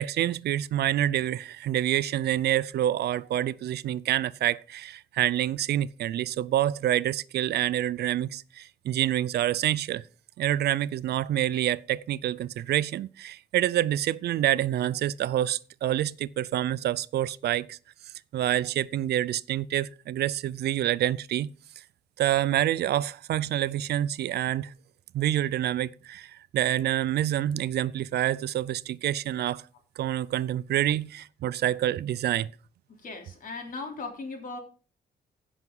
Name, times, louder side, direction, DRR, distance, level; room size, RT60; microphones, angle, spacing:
voice 1, 0.0-10.0 10.4-17.8 18.3-21.5 22.2-24.7 25.1-29.6 30.0-32.5, right 12 dB, 80° right, 0.5 m, -27 dB
voice 2, 33.0-34.6, left 3 dB, 55° left, 3.4 m, -38 dB
15.5 x 6.0 x 5.4 m
cardioid pair, 135°, 17 cm